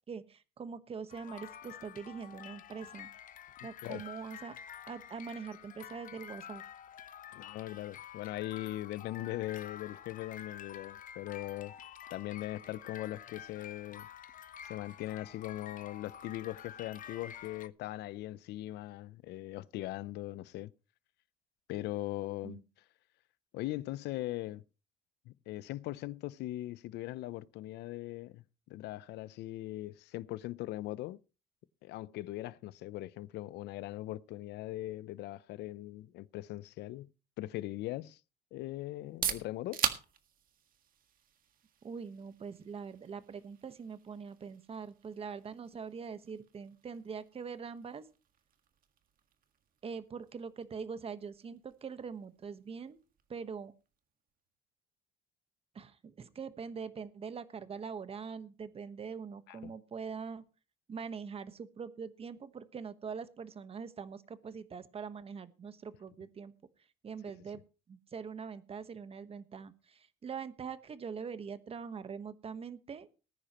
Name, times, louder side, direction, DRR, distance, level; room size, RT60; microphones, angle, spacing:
voice 1, 0.1-3.1 3.6-4.6 4.9-6.6 22.4-22.6 41.8-48.1 49.8-53.0 53.3-53.7 55.7-60.4 60.9-66.5 67.0-67.6 67.9-73.1, right 6 dB, 35° right, 1.2 m, -43 dB
sound 1, 1.1-17.7, left 9 dB, 50° left, 0.9 m, -49 dB
voice 2, 7.3-11.7 12.1-14.1 14.7-20.7 21.7-22.6 23.5-24.6 25.3-31.2 31.8-37.1 37.4-38.2 38.5-39.8 59.5-59.7, left 16 dB, 80° left, 0.6 m, -40 dB
sound 2, 38.9-54.6, right 9 dB, 55° right, 1.7 m, -44 dB
19.5 x 10.0 x 3.0 m
cardioid pair, 110°, 17 cm